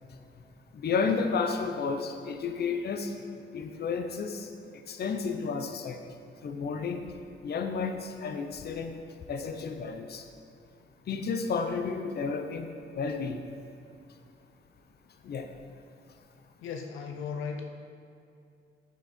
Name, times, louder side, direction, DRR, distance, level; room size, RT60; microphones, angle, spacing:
voice 1, 0.7-3.1 3.5-6.0 6.4-7.1 7.4-9.0 9.3-10.3 11.1-12.7 12.9-13.4 15.2-15.5, left 5 dB, 55° left, 6 dB, 0.9 m, -32 dB
voice 2, 16.6-17.6, left 6 dB, 85° left, 4 dB, 0.7 m, -36 dB
8.9 x 8.3 x 4.4 m, 2.6 s
cardioid pair, 90°, 20 cm